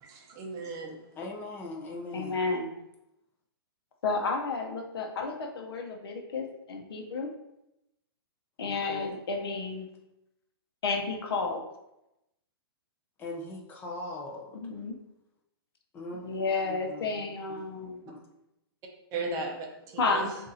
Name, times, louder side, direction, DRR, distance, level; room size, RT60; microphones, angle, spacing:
voice 1, 0.0-1.0 19.1-20.4, right 3 dB, 25° right, 2 dB, 0.7 m, -36 dB
voice 2, 1.2-2.4 8.6-9.1 13.2-14.6 15.9-16.4 16.7-17.3 18.1-18.2, left 2 dB, 15° left, -1 dB, 0.6 m, -40 dB
voice 3, 2.1-2.7 4.0-7.3 8.6-9.9 10.8-11.6 14.5-14.9 16.2-18.0 20.0-20.3, left 4 dB, 75° left, 3 dB, 0.9 m, -31 dB
6.9 x 2.6 x 2.8 m, 0.88 s
hypercardioid pair, 145°, 13 cm